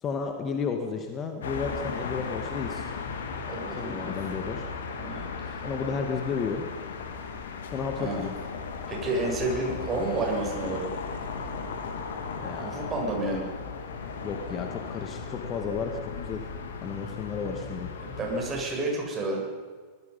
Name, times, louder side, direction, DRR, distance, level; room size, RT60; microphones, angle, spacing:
voice 1, 0.0-2.9 3.8-4.7 5.6-6.7 7.7-8.3 12.4-12.9 14.2-16.4 16.8-17.9, left 5 dB, 25° left, 4 dB, 2.2 m, -33 dB
sound 1, 1.4-18.6, left 5 dB, 60° left, 2.7 m, -36 dB
voice 2, 3.5-4.2 5.0-5.6 7.9-8.3 8.9-10.9 12.5-13.5 18.0-19.4, right 2 dB, 20° right, -1 dB, 7.6 m, -30 dB
24.5 x 20.5 x 5.6 m, 1.5 s
figure-of-eight pair, 90°, 0 cm